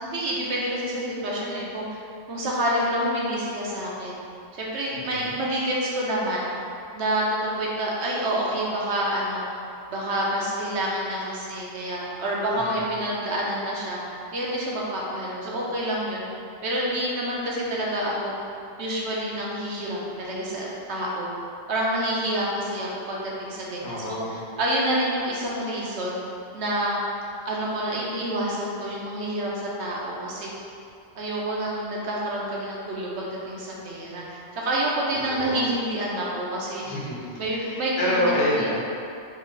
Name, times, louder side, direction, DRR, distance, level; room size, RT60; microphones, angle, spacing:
voice 1, 0.0-1.8 2.3-4.2 4.6-6.5 6.9-9.4 9.9-14.0 14.3-16.3 16.6-18.3 18.8-21.3 21.7-26.2 26.5-27.0 27.4-30.5 31.2-36.8 37.4-38.7, right 1 dB, 75° right, -4 dB, 1.0 m, -28 dB
voice 2, 4.9-5.3 12.5-12.9 23.8-24.4 35.3-35.7 36.9-37.3 37.5-38.8, left 1 dB, 65° left, -5 dB, 1.0 m, -28 dB
3.2 x 3.0 x 3.7 m, 2.5 s
omnidirectional pair, 1.2 m